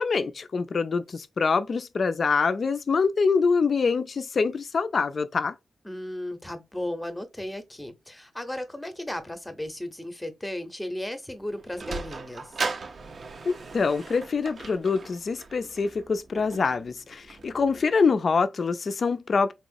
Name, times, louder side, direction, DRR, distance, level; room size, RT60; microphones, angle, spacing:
voice 1, 0.0-5.5 13.5-19.5, left 4 dB, 45° left, 0.4 m, -25 dB
voice 2, 5.8-12.6, left 1 dB, 5° left, 0.8 m, -35 dB
Sliding door, 11.3-17.9, right 4 dB, 45° right, 0.5 m, -38 dB
4.2 x 3.0 x 2.6 m
wide cardioid pair, 115°, 0 cm